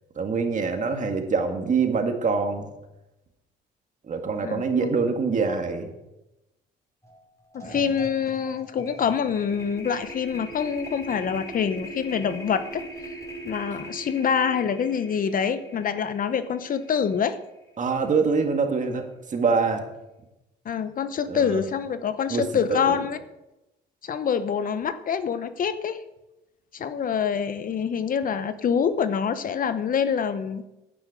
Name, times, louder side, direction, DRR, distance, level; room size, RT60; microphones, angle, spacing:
voice 1, 0.2-2.7 4.1-5.9 7.6-7.9 17.8-19.8 21.3-21.7 22.3-23.0, right 5 dB, 40° right, 5 dB, 1.9 m, -25 dB
voice 2, 4.4-4.9 7.5-13.1 13.4-17.4 20.6-23.2 24.0-26.0 26.7-30.7, left 7 dB, 45° left, 12 dB, 0.8 m, -26 dB
sound 1, 7.0-7.2 7.5-17.8, right 1 dB, 15° left, 5.1 m, -41 dB
10.0 x 9.7 x 4.9 m, 0.94 s
supercardioid pair, 80°, 19 cm